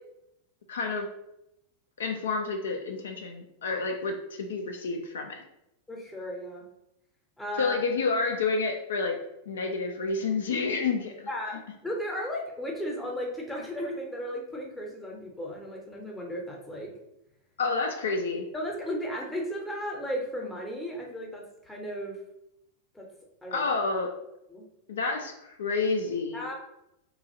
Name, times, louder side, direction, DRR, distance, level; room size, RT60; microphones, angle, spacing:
voice 1, 0.7-1.1 2.0-5.4 7.6-9.2 9.5-11.3 17.6-18.5 23.5-24.1 24.9-26.4, left 4 dB, 65° left, 4 dB, 0.3 m, -29 dB
voice 2, 5.9-6.6 7.4-7.9 11.3-16.9 18.5-22.2 22.9-23.1 23.4-23.6 24.5-24.7 26.3-26.5, equal, 5° left, -1 dB, 0.7 m, -35 dB
2.9 x 2.3 x 2.6 m, 0.84 s
figure-of-eight pair, 90°, 0 cm